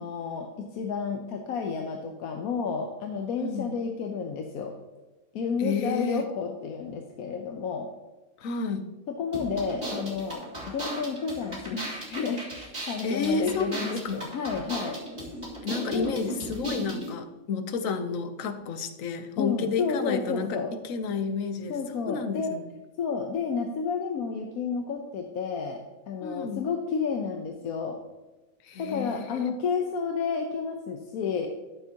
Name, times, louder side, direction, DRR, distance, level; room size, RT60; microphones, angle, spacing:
voice 1, 0.0-4.7 5.3-7.9 9.1-15.0 15.9-16.1 19.4-20.7 21.7-22.6 23.0-28.0 28.8-31.5, left 5 dB, 85° left, 3 dB, 1.2 m, -31 dB
voice 2, 3.4-3.7 5.6-6.3 8.4-8.9 13.0-14.2 15.6-21.7 22.1-22.6 26.2-26.7 28.6-29.5, left 4 dB, 70° left, 9 dB, 1.1 m, -31 dB
sound 1, 9.3-17.1, right 1 dB, 40° right, 2.8 m, -36 dB
13.5 x 7.1 x 2.9 m, 1.1 s
omnidirectional pair, 1.5 m